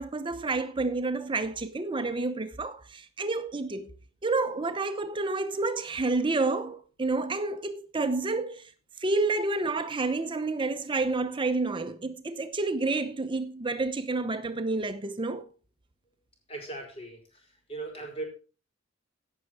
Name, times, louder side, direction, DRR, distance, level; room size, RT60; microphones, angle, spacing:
voice 1, 0.0-3.9 4.2-8.7 9.0-15.4, right 3 dB, 25° right, 0.8 m, -29 dB
voice 2, 16.5-17.2 17.7-18.2, right 3 dB, 30° left, 5.2 m, -37 dB
16.0 x 6.6 x 4.7 m
head